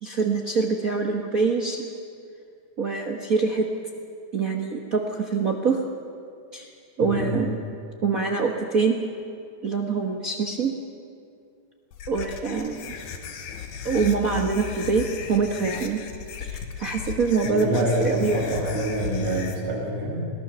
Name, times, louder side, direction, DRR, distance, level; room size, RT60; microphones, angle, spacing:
voice 1, 0.0-1.9 2.8-3.7 4.3-5.8 6.5-6.7 7.0-9.0 9.6-10.7 12.1-12.8 13.8-16.0 16.4-18.4, right 4 dB, 60° right, 1 dB, 0.9 m, -25 dB
voice 2, 7.0-7.4 17.4-20.3, equal, 85° right, -3 dB, 6.6 m, -26 dB
sound 1, 11.9-19.5, left 7 dB, 85° left, 2.8 m, -36 dB
21.5 x 18.0 x 6.9 m, 2.3 s
omnidirectional pair, 3.4 m